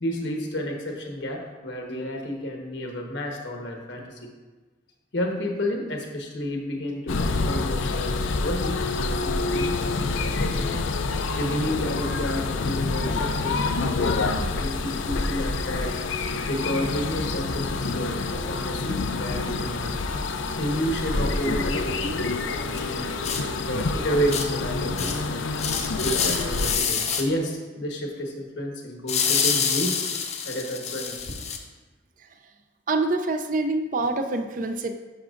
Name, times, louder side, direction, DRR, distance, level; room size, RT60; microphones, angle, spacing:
voice 1, 0.0-4.3 5.1-10.5 11.4-16.0 16.5-19.9 20.6-23.1 23.5-25.4 26.0-30.0 30.4-31.3, equal, 65° left, 1 dB, 1.2 m, -31 dB
sound 1, 7.1-26.8, left 3 dB, 85° left, 0.5 m, -27 dB
sound 2, 22.7-22.8 23.2-23.4 23.8-23.9 24.3-24.5 25.0-25.3 25.5-27.2 29.1-31.6, left 6 dB, 35° left, 0.6 m, -26 dB
voice 2, 32.9-34.9, right 2 dB, 45° right, 7 dB, 0.5 m, -25 dB
11.5 x 6.0 x 2.5 m, 1.3 s
head